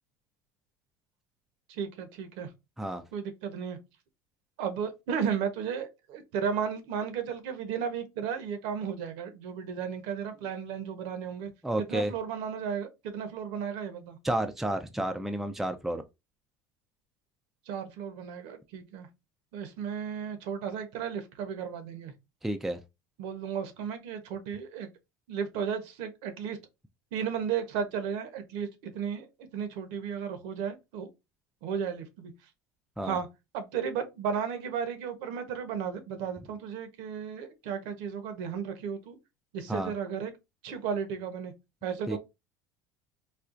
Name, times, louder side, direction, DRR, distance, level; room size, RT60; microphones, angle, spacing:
voice 1, 1.7-2.5 3.1-3.8 4.6-11.5 11.8-14.2 17.7-19.1 19.5-22.1 23.2-24.9 25.3-26.6 27.1-31.1 31.6-32.3 33.0-33.3 33.5-39.2 39.5-40.3 40.6-41.5 41.8-42.2, right 7 dB, 75° right, 0.9 m, -34 dB
voice 2, 11.6-12.1 14.2-16.0 22.4-22.8 33.0-33.2 39.7-39.9 42.1-42.2, right 1 dB, 5° right, 0.4 m, -31 dB
4.3 x 2.3 x 2.5 m
supercardioid pair, 110°, 10 cm